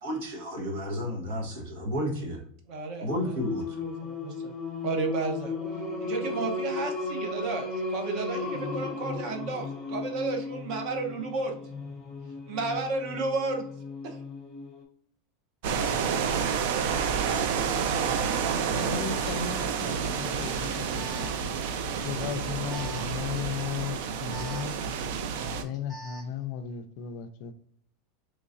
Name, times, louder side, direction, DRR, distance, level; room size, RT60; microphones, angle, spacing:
voice 1, 0.0-2.4 3.0-3.8, left 1 dB, 75° right, 1.2 m, -32 dB
voice 2, 2.7-3.4 3.8-4.6 4.8-5.6 6.0-11.6 12.5-13.7 14.0-14.2, right 3 dB, 45° right, 0.7 m, -32 dB
Singing, 3.1-14.8, left 3 dB, 15° left, 0.8 m, -35 dB
sound 1, 15.6-25.6, right 6 dB, 60° right, 0.4 m, -29 dB
voice 3, 18.8-21.1 22.0-24.8 25.6-27.5, left 8 dB, 50° left, 0.3 m, -35 dB
Alarm, 19.1-26.4, right 1 dB, 20° right, 1.3 m, -49 dB
3.9 x 3.1 x 2.5 m
supercardioid pair, 165°, 0 cm